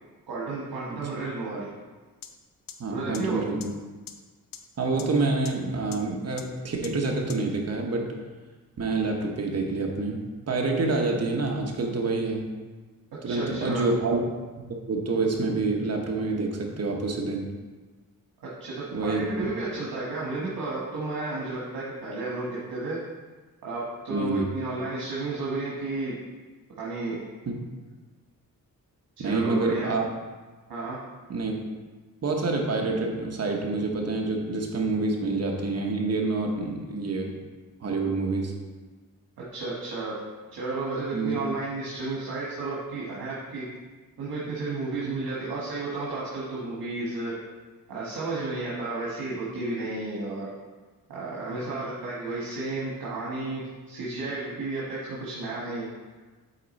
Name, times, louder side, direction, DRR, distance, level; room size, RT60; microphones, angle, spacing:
voice 1, 0.3-1.7 2.9-3.4 13.3-13.9 18.6-23.0 23.6-26.1 26.8-27.2 29.2-29.9 30.7-31.0 39.5-40.1 40.5-43.6 44.2-47.3 47.9-50.5 51.1-55.9, right 3 dB, 85° right, -6 dB, 1.4 m, -32 dB
sound 1, 2.2-2.3 2.7-2.8 3.1-3.2 3.6-3.7 4.1-4.2 4.5-4.6 5.0-5.1 5.5-5.6 5.9-6.0 6.4-6.5 6.8-6.9 7.3-7.4, left 9 dB, 75° left, 0.6 m, -39 dB
voice 2, 2.8-3.7 4.8-8.1 8.8-10.2 10.5-12.5 13.2-14.2 14.9-17.5 18.9-19.5 24.1-24.5 27.5-27.6 29.2-30.1 31.3-31.5 32.2-37.3 37.8-38.5 41.1-41.4, right 3 dB, 45° right, 1 dB, 1.0 m, -27 dB
8.3 x 3.6 x 4.1 m, 1.3 s
wide cardioid pair, 150°, 35 cm